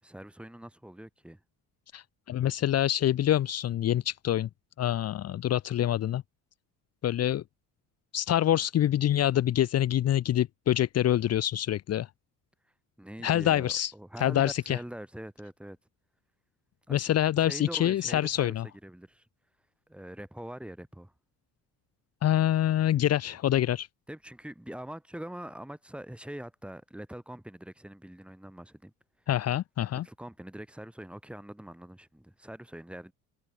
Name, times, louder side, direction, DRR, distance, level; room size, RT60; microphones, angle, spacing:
voice 1, 0.0-1.4 13.0-15.8 16.9-17.1 17.4-18.6 18.8-19.3 19.9-21.1 24.1-28.9 30.0-33.1, right 1 dB, 5° right, 7.0 m, -43 dB
voice 2, 1.9-4.5 4.8-6.2 7.0-7.4 8.1-12.1 13.2-13.9 14.2-14.8 16.9-18.6 22.2-23.9 29.3-30.0, left 12 dB, 50° left, 1.0 m, -26 dB
cardioid pair, 140°, 33 cm